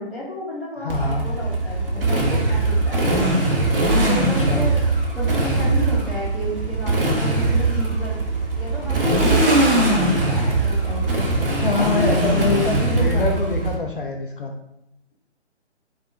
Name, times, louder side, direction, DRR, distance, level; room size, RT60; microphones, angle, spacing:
voice 1, 0.0-3.7 4.0-4.8 5.1-8.2 8.5-11.2 11.7-13.5, left 1 dB, ahead, -15 dB, 1.5 m, -31 dB
voice 2, 0.8-1.3 4.5-4.6 11.6-14.5, left 4 dB, 50° left, 3 dB, 0.5 m, -25 dB
Motorcycle, 0.9-13.7, right 2 dB, 55° right, 1.2 m, -20 dB
4.2 x 3.2 x 3.5 m, 0.83 s
figure-of-eight pair, 145°, 35 cm